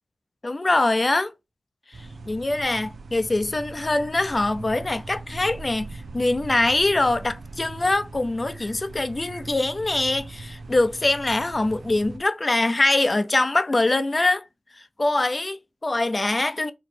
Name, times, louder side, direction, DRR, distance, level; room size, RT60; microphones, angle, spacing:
voice 1, 0.4-1.3 2.3-14.4 15.0-16.7, left 2 dB, 40° left, 0.6 m, -23 dB
sound 1, 1.9-12.2, right 3 dB, 80° right, 0.5 m, -40 dB
4.4 x 3.1 x 2.7 m
cardioid pair, 40°, 0 cm